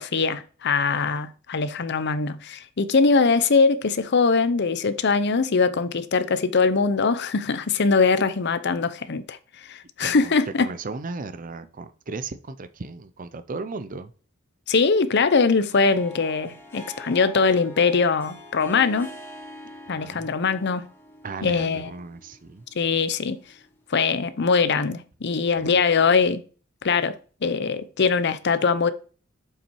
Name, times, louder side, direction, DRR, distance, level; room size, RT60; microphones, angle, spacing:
voice 1, 0.0-10.7 14.7-19.1 19.9-20.8 21.4-21.9 22.7-23.4 23.9-26.4 26.8-27.2 27.4-28.9, left 4 dB, 55° left, 0.7 m, -22 dB
voice 2, 10.0-10.3 10.6-14.1 20.0-20.3 21.2-22.7 25.5-25.8, right 3 dB, 40° right, 0.6 m, -36 dB
Harp, 15.6-23.9, equal, 10° left, 2.4 m, -45 dB
7.2 x 5.6 x 4.7 m
head